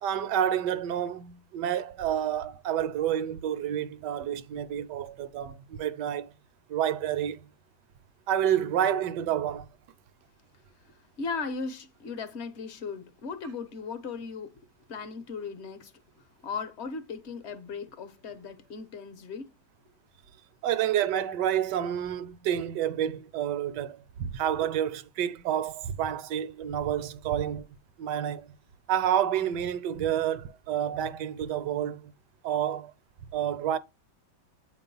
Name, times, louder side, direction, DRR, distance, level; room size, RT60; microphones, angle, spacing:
voice 1, 0.0-6.3 6.7-7.4 8.3-9.7 20.6-27.7 28.0-28.5 28.9-32.1 32.4-32.9 33.3-33.8, right 10 dB, 75° right, 1.2 m, -29 dB
voice 2, 10.9-14.6 14.9-19.5, left 5 dB, 50° left, 0.9 m, -37 dB
8.7 x 3.0 x 5.3 m
omnidirectional pair, 2.0 m